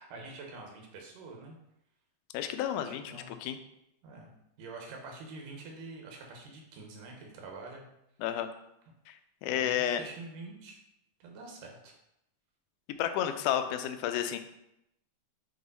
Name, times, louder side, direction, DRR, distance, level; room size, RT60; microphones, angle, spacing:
voice 1, 0.0-1.6 2.9-3.3 4.0-4.3 4.6-7.8 9.4-10.8 11.2-11.9, right 3 dB, 90° right, 1 dB, 2.7 m, -46 dB
voice 2, 2.3-3.6 8.2-8.5 9.1-9.2 9.4-10.0 13.0-14.4, left 10 dB, 80° left, 8 dB, 2.0 m, -31 dB
7.8 x 3.1 x 4.0 m, 0.82 s
omnidirectional pair, 3.7 m